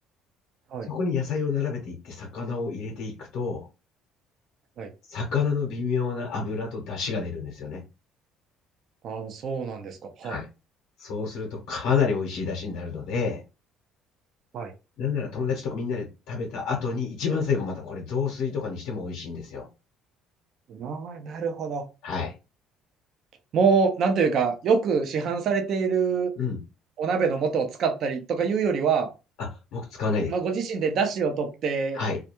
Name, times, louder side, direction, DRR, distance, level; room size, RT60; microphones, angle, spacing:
voice 1, 0.9-3.7 5.1-7.8 10.2-10.5 11.0-13.4 15.0-19.7 22.0-22.3 26.4-26.6 29.4-30.3 31.9-32.2, left 5 dB, 85° left, 0.8 m, -29 dB
voice 2, 9.0-10.4 14.5-14.7 20.7-21.8 23.5-26.3 27.0-29.1 30.3-32.0, right 5 dB, 55° right, 0.6 m, -25 dB
2.3 x 2.2 x 2.9 m
cardioid pair, 95°, 0 cm